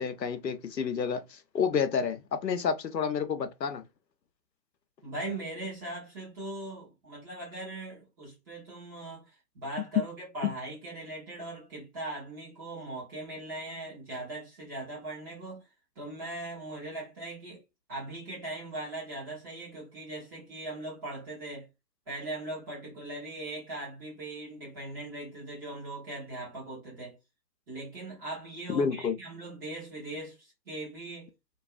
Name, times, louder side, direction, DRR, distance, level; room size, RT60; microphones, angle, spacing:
voice 1, 0.0-3.8 28.7-29.2, left 6 dB, 85° left, 0.7 m, -30 dB
voice 2, 5.0-15.7 15.9-17.6 17.9-21.7 22.1-27.2 27.7-31.3, right 2 dB, 15° right, 0.9 m, -40 dB
2.6 x 2.3 x 2.3 m
figure-of-eight pair, 135°, 49 cm